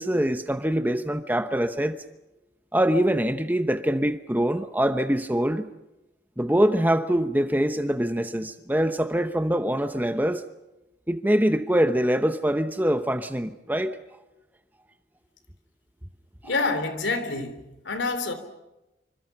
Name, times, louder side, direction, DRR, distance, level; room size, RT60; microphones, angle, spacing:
voice 1, 0.0-2.0 2.7-5.7 6.4-10.4 11.1-14.0, equal, 10° right, 0.9 m, -24 dB
voice 2, 16.4-18.3, left 3 dB, 80° left, 3.2 m, -27 dB
27.5 x 25.5 x 5.8 m
head